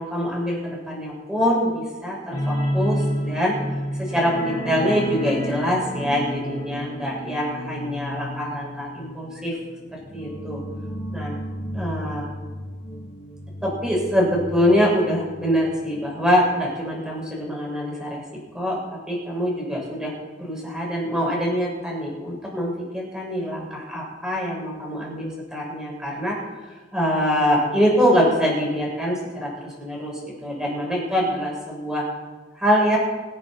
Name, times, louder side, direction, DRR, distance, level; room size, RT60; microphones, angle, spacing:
voice 1, 0.0-3.6 3.9-9.6 9.9-10.6 11.1-11.3 11.7-12.3 13.6-18.2 18.5-26.4 26.6-32.0 32.5-33.0, equal, 5° right, -4 dB, 6.7 m, -24 dB
sound 1, 2.3-15.6 15.9-16.1 16.4-16.5, equal, 35° left, 2.4 m, -31 dB
25.0 x 10.5 x 4.6 m, 1.3 s
head